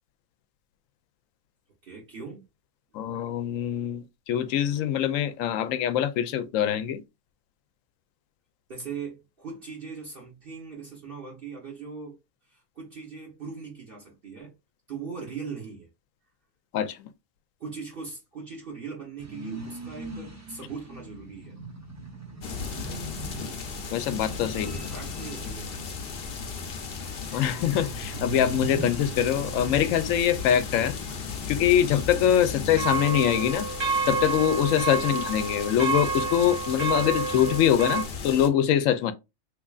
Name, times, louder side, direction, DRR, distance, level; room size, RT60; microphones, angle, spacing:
voice 1, 1.8-2.4 8.7-12.2 12.5-14.5 14.9-15.9 17.6-21.6 24.5-25.8, right 5 dB, 50° right, 1.1 m, -40 dB
voice 2, 2.9-7.0 16.7-17.0 23.9-24.7 27.3-31.0 31.5-33.7 34.1-39.1, left 10 dB, 85° left, 1.0 m, -24 dB
sound 1, 19.2-33.1, right 3 dB, 15° right, 0.6 m, -41 dB
sound 2, 22.4-38.5, left 5 dB, 55° left, 0.9 m, -36 dB
sound 3, 27.3-27.9 32.8-38.0, right 5 dB, 80° right, 1.3 m, -30 dB
3.7 x 3.2 x 2.3 m
omnidirectional pair, 1.3 m